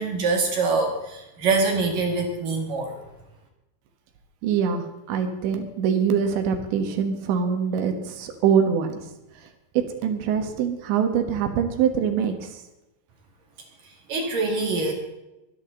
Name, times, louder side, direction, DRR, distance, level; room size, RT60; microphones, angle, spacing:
voice 1, 0.0-3.0 13.8-14.9, right 3 dB, 55° right, 2 dB, 3.3 m, -24 dB
voice 2, 4.4-9.1 9.8-12.6, right 7 dB, 70° right, 6 dB, 3.6 m, -24 dB
24.0 x 10.5 x 3.9 m, 0.95 s
omnidirectional pair, 5.5 m